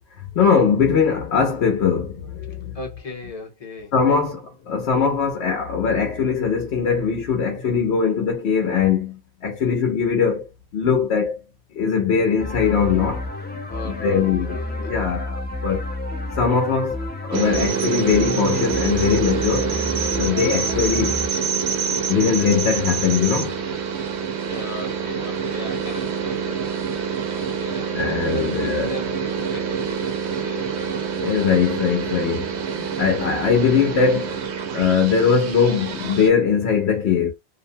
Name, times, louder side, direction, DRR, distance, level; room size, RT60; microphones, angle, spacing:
voice 1, 0.1-2.8 3.9-11.4 11.7-13.3 13.8-15.9 16.3-19.7 20.1-21.2 22.1-23.6 27.9-29.0 31.1-34.4 34.7-37.3, left 6 dB, 80° left, 0.9 m, -21 dB
voice 2, 2.7-3.9 13.6-15.1 20.3-20.7 24.4-26.6 27.5-28.0 28.3-31.0, left 1 dB, 35° left, 0.9 m, -37 dB
sound 1, 12.4-21.3, left 2 dB, 15° left, 0.5 m, -30 dB
sound 2, 17.3-36.3, right 6 dB, 85° right, 0.9 m, -26 dB
2.6 x 2.1 x 2.6 m
omnidirectional pair, 1.1 m